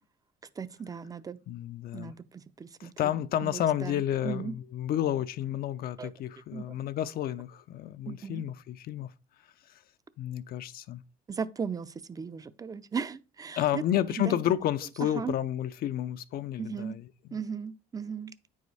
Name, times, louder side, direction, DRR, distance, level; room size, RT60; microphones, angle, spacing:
voice 1, 0.6-1.4 1.9-2.9 3.4-4.6 6.0-6.1 6.5-6.8 8.1-8.4 11.3-13.8 14.2-14.4 15.1-15.4 16.6-17.0 17.3-18.3, right 6 dB, 20° right, 0.5 m, -37 dB
voice 2, 1.5-2.1 2.8-9.1 10.2-11.0 13.6-17.4, left 11 dB, 65° left, 0.5 m, -31 dB
9.1 x 4.9 x 4.1 m
cardioid pair, 110°, 17 cm